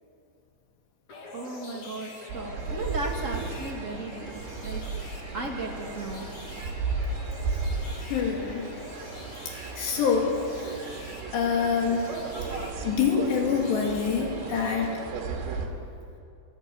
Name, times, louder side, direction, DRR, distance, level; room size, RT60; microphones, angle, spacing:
sound 1, 1.1-14.7, left 2 dB, 40° left, 2.7 m, -45 dB
voice 1, 1.3-4.8 5.3-6.3, right 2 dB, 30° right, 0 dB, 1.5 m, -36 dB
sound 2, 2.3-15.7, right 4 dB, 85° right, 4.6 m, -35 dB
voice 2, 8.0-8.7 9.7-10.8 11.3-12.1 12.8-14.9, left 6 dB, 75° left, 0 dB, 4.4 m, -26 dB
23.0 x 18.0 x 8.6 m, 2.5 s
omnidirectional pair, 5.0 m